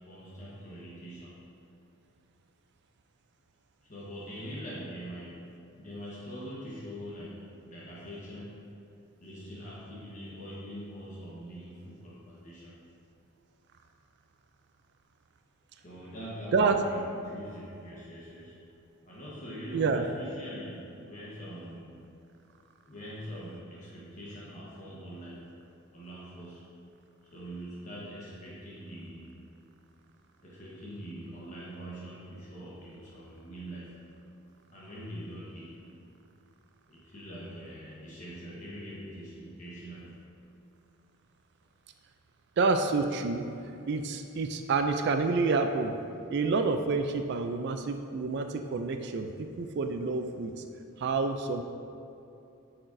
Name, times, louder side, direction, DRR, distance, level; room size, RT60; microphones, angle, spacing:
voice 1, 0.0-1.4 3.9-8.7 9.2-12.7 15.8-18.7 19.0-22.1 22.8-25.5 25.9-26.7 27.3-29.3 30.4-34.0 34.7-35.8 36.9-40.1, equal, 35° left, -8 dB, 1.2 m, -43 dB
voice 2, 19.7-20.0 42.6-43.4 43.9-45.9 46.3-50.6 51.0-51.6, right 4 dB, 55° right, 6 dB, 0.3 m, -28 dB
8.6 x 6.0 x 2.6 m, 2.7 s
head